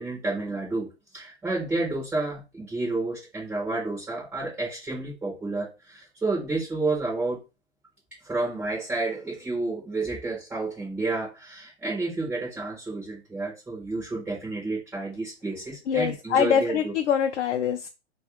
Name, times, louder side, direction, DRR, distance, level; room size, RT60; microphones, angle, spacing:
voice 1, 0.0-7.4 8.2-16.9, right 2 dB, 5° right, -4 dB, 0.4 m, -30 dB
voice 2, 15.9-17.9, left 8 dB, 80° left, 5 dB, 0.5 m, -24 dB
3.1 x 2.3 x 2.9 m, 0.27 s
hypercardioid pair, 145°, 34 cm